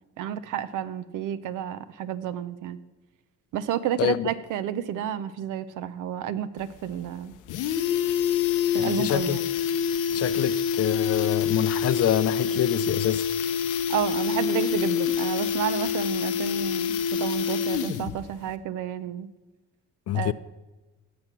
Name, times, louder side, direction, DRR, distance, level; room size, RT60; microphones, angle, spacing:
voice 1, 0.2-2.8 3.5-7.3 8.7-9.5 13.9-19.3 20.1-20.3, right 10 dB, 85° right, 0.7 m, -31 dB
voice 2, 4.0-4.3 8.8-9.4 10.1-13.3 20.1-20.3, left 12 dB, 55° left, 0.5 m, -26 dB
sound 1, 6.6-6.7 7.0-7.1 7.3-18.2 18.5-18.6, left 8 dB, 85° left, 0.8 m, -26 dB
16.0 x 6.0 x 6.0 m
cardioid pair, 90°, 30 cm